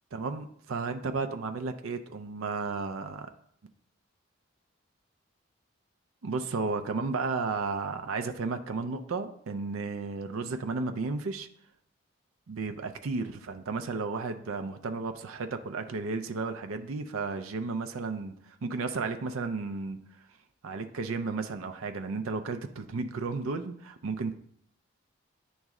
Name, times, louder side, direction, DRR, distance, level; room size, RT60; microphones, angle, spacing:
voice 1, 0.1-3.3 6.2-11.5 12.5-18.3 18.6-20.0 20.6-24.3, right 4 dB, 85° right, 7 dB, 0.5 m, -33 dB
9.2 x 3.1 x 3.6 m, 0.68 s
head